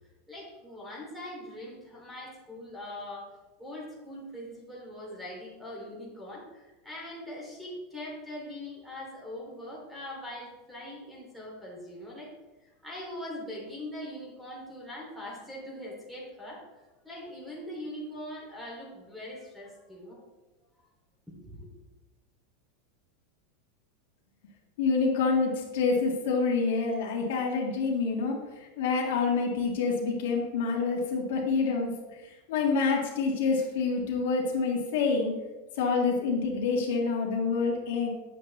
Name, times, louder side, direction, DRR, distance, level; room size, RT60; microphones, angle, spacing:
voice 1, 0.3-12.3 12.8-16.7 17.0-20.2 21.4-21.6, left 1 dB, 5° right, -4 dB, 2.8 m, -42 dB
voice 2, 24.8-28.4 28.8-31.9 32.5-35.3 35.8-38.1, left 4 dB, 75° left, 0 dB, 1.9 m, -27 dB
8.8 x 7.1 x 3.3 m, 1.1 s
supercardioid pair, 145°, 0 cm